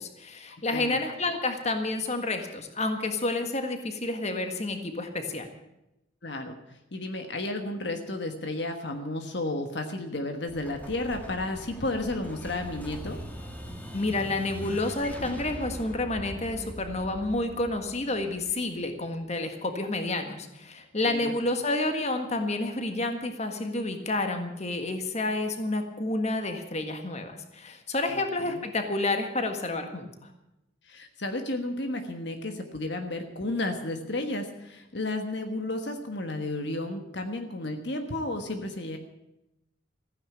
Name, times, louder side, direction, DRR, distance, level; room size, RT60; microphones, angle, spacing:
voice 1, 0.0-5.5 13.9-30.1, left 2 dB, 35° left, 6 dB, 1.7 m, -30 dB
voice 2, 6.2-6.6 6.9-13.2 21.0-21.4 28.1-28.6 30.8-39.0, left 2 dB, 60° left, 5 dB, 1.4 m, -32 dB
Explosion, 10.5-19.1, equal, 10° left, 1.7 m, -41 dB
15.0 x 9.9 x 8.6 m, 0.89 s
head